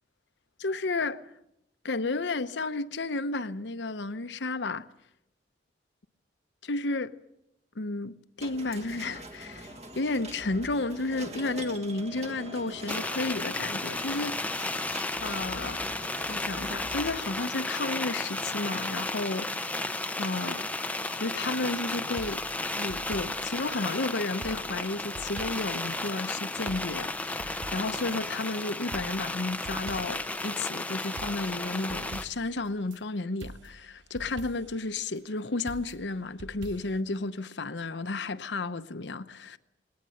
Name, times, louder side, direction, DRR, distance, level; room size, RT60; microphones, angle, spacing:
voice 1, 0.6-1.3 1.8-4.9 6.6-7.2 7.8-14.5 15.2-15.8 16.3-19.7 20.2-20.7 21.1-22.4 22.8-39.6, left 3 dB, 70° left, 0.9 m, -32 dB
sound 1, 8.4-17.2, right 1 dB, 35° right, 1.5 m, -43 dB
sound 2, 12.9-32.2, left 2 dB, 10° left, 0.7 m, -33 dB
sound 3, 22.2-24.0 24.4-25.9 26.2-26.3 26.7-28.5 28.9-30.4 30.7-30.8 31.2-33.0 33.4-34.9 35.7-37.0, right 2 dB, 85° right, 0.8 m, -46 dB
20.5 x 18.0 x 7.8 m
head